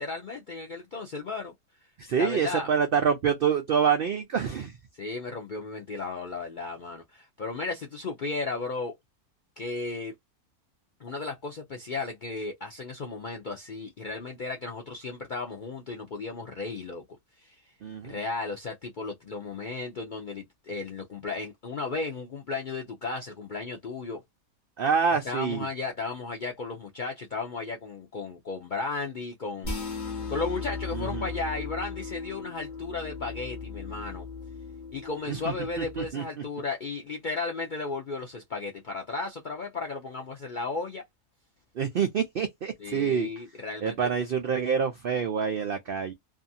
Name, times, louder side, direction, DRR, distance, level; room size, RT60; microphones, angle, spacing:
voice 1, 0.0-1.5 2.2-2.7 4.9-8.9 9.6-10.1 11.0-17.0 17.4-17.6 18.0-24.2 25.2-34.3 34.9-41.0 42.8-44.1, left 3 dB, 65° left, 0.4 m, -35 dB
voice 2, 2.0-4.8 17.8-18.2 24.8-25.7 30.9-31.3 35.3-36.2 41.8-43.3 43.8-46.1, right 7 dB, 90° right, 0.5 m, -27 dB
sound 1, 29.6-36.1, left 4 dB, 35° left, 1.1 m, -37 dB
2.6 x 2.4 x 2.6 m
omnidirectional pair, 1.6 m